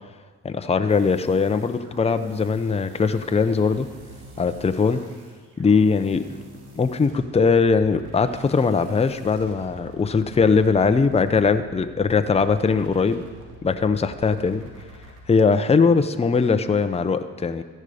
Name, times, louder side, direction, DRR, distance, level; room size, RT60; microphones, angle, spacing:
voice 1, 0.4-3.9 4.4-5.0 5.6-6.2 6.8-13.3 13.6-14.7 15.3-17.6, left 5 dB, 20° left, 9 dB, 0.7 m, -20 dB
sound 1, 0.9-15.2, right 1 dB, 80° right, 2.9 m, -46 dB
14.0 x 11.0 x 5.0 m, 1.5 s
cardioid pair, 90°, 30 cm